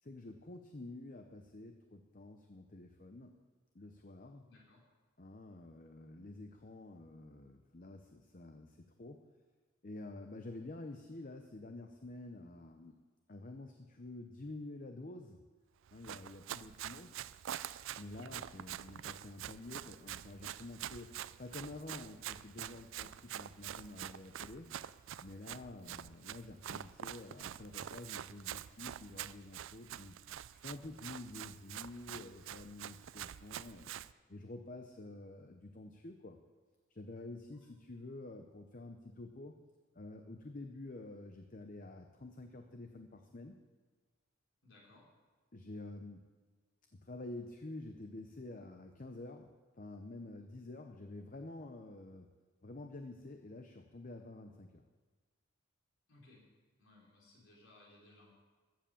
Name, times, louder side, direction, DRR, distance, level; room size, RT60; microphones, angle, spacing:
voice 1, 0.0-3.3 3.7-4.5 5.2-9.2 9.8-13.0 13.3-15.4 15.9-17.1 17.9-24.7 25.2-30.1 30.5-33.9 34.3-36.4 36.9-39.6 39.9-43.6 45.5-46.2 46.9-49.5 49.8-52.3 52.6-54.8, left 2 dB, 40° left, 5 dB, 0.7 m, -49 dB
voice 2, 4.5-4.8 18.2-18.3 44.6-45.0 56.1-56.4 56.8-58.4, left 2 dB, 65° left, -4 dB, 4.6 m, -62 dB
Run, 15.9-34.1, right 11 dB, 65° right, 0.3 m, -46 dB
14.5 x 7.6 x 7.1 m, 1.4 s
head